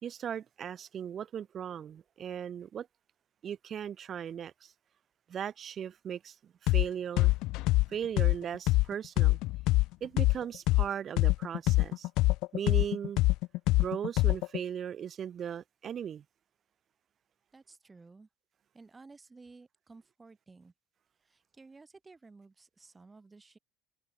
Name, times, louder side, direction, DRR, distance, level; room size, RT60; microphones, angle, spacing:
voice 1, 0.0-2.9 3.4-4.7 5.3-7.3 7.9-9.4 10.0-12.1 12.5-13.2 13.8-16.2, right 8 dB, 30° right, 1.9 m, -38 dB
sound 1, 6.7-6.9 7.2-10.9 11.2-14.6, left 20 dB, 60° left, 0.4 m, -25 dB
voice 2, 17.5-18.3 18.7-20.7 21.2-23.6, right 3 dB, 10° right, 1.6 m, -55 dB
cardioid pair, 165°, 0 cm